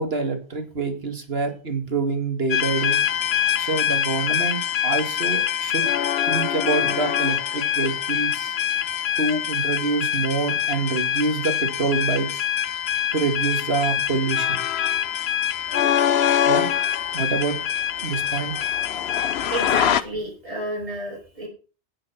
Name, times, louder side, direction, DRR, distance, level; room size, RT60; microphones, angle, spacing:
voice 1, 0.0-3.0 3.6-5.8 6.2-8.6 9.2-12.4 13.1-14.6 16.5-16.7 17.1-17.6 18.0-18.5, right 4 dB, 60° right, 6 dB, 2.3 m, -26 dB
sound 1, 2.5-20.0, left 10 dB, 70° left, 1.0 m, -24 dB
voice 2, 19.5-21.5, right 1 dB, 30° right, -1 dB, 5.2 m, -30 dB
10.0 x 9.4 x 5.8 m, 0.34 s
omnidirectional pair, 1.1 m